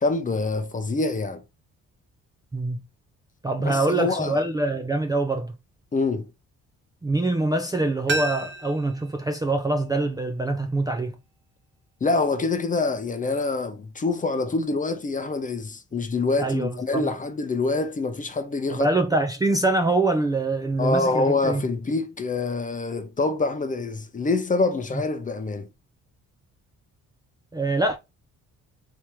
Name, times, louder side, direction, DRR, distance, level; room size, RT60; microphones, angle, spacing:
voice 1, 0.0-1.4 3.6-4.4 5.9-6.3 12.0-18.9 20.8-25.7, left 3 dB, 25° left, 0.7 m, -25 dB
voice 2, 2.5-2.9 3.4-5.5 7.0-11.2 16.4-17.1 18.7-21.6 24.9-25.0 27.5-28.0, right 2 dB, 15° right, 0.4 m, -24 dB
sound 1, 8.1-10.9 11.2-11.3, right 3 dB, 40° right, 0.8 m, -34 dB
3.4 x 2.9 x 3.0 m
cardioid pair, 90°, 30 cm